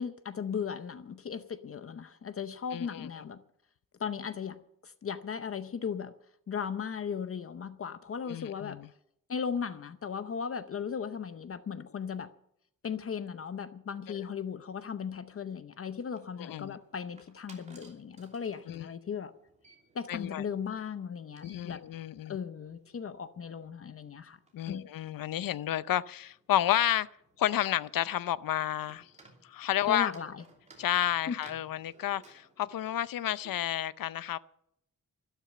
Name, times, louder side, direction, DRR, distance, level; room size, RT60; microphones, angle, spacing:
voice 1, 0.0-3.4 4.0-6.1 6.5-8.8 9.3-12.3 12.8-19.3 19.9-21.8 22.3-24.4 24.7-24.9 29.9-30.4 30.9-31.4, left 6 dB, 40° left, 0.7 m, -37 dB
voice 2, 2.7-3.1 8.3-8.9 14.1-14.2 16.4-16.8 18.7-18.9 20.1-20.4 21.4-22.4 24.5-27.1 27.4-29.1 29.4-30.1 30.8-34.4, left 12 dB, 75° left, 0.6 m, -31 dB
sound 1, 15.8-33.7, right 2 dB, 20° right, 2.9 m, -61 dB
12.5 x 12.5 x 6.8 m
wide cardioid pair, 180°, 34 cm